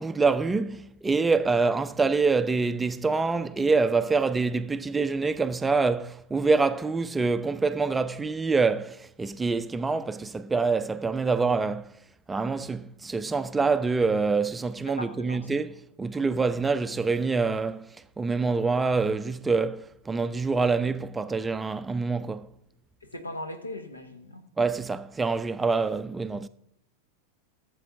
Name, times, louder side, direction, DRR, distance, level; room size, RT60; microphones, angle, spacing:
voice 1, 0.0-12.0 12.3-22.5 24.6-26.5, right 4 dB, 10° right, 0.4 m, -26 dB
voice 2, 14.9-15.5 23.1-24.4, left 1 dB, 80° left, 1.2 m, -38 dB
15.5 x 7.6 x 2.6 m
figure-of-eight pair, 90°, 0 cm